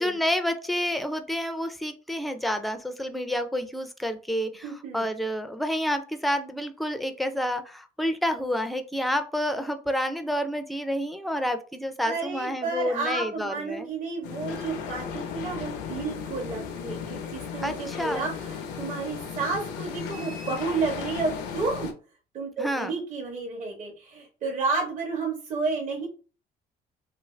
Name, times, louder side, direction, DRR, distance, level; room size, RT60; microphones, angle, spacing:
voice 1, 0.0-13.9 17.6-18.3 22.6-22.9, equal, ahead, 8 dB, 0.4 m, -29 dB
voice 2, 4.6-5.1 12.0-21.9 22.3-26.1, right 4 dB, 45° right, -1 dB, 0.8 m, -31 dB
sound 1, 14.2-21.9, left 6 dB, 90° left, 0.6 m, -35 dB
3.0 x 2.5 x 3.1 m, 0.37 s
cardioid pair, 110°, 17 cm